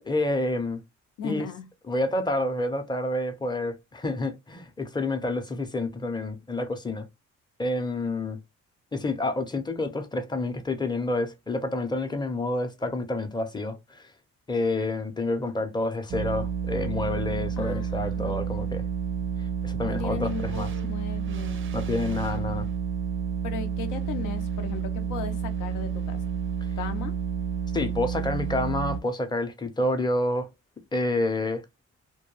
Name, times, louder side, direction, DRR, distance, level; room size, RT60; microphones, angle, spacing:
voice 1, 0.0-0.8 1.2-1.5 1.9-7.1 7.6-8.4 8.9-14.1 14.5-18.8 19.6-20.7 21.7-22.7 27.7-30.5 30.9-31.6, left 2 dB, 15° left, 0.5 m, -28 dB
voice 2, 1.2-1.7 17.6-18.4 19.8-21.7 23.4-26.2 26.8-27.1, left 6 dB, 85° left, 0.6 m, -36 dB
sound 1, 16.1-29.0, right 7 dB, 45° right, 0.4 m, -30 dB
2.2 x 2.1 x 3.0 m
cardioid pair, 90°, 30 cm